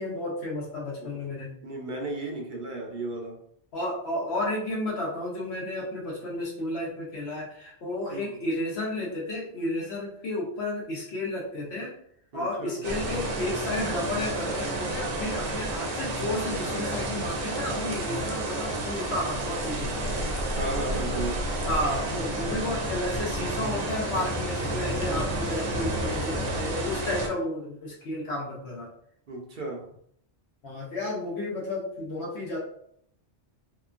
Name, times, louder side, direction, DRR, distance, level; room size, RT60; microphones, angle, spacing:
voice 1, 0.0-1.5 3.7-11.9 12.3-20.1 21.7-28.9 30.6-32.6, left 1 dB, 70° left, -3 dB, 1.0 m, -32 dB
voice 2, 1.6-3.4 8.1-8.4 12.3-12.8 20.5-21.4 29.3-29.9, right 2 dB, 55° right, 0 dB, 0.7 m, -34 dB
sound 1, 12.8-27.3, right 1 dB, 85° right, 1.0 m, -30 dB
2.9 x 2.2 x 2.4 m, 0.67 s
omnidirectional pair, 1.2 m